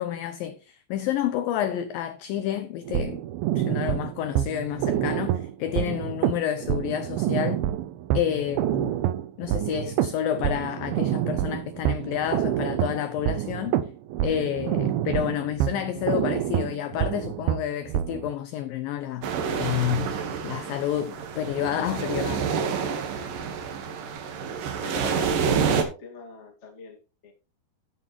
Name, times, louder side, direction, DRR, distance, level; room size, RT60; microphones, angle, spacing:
voice 1, 0.0-3.2 3.6-7.6 8.1-9.0 9.4-13.8 14.2-20.2 20.4-22.5, left 10 dB, 85° left, 2.0 m, -29 dB
sound 1, 2.9-18.3, right 12 dB, 80° right, 2.2 m, -27 dB
sound 2, 19.2-25.8, right 6 dB, 60° right, 2.7 m, -28 dB
voice 2, 24.8-27.3, left 5 dB, 35° left, 1.1 m, -42 dB
11.5 x 9.4 x 3.1 m
omnidirectional pair, 4.9 m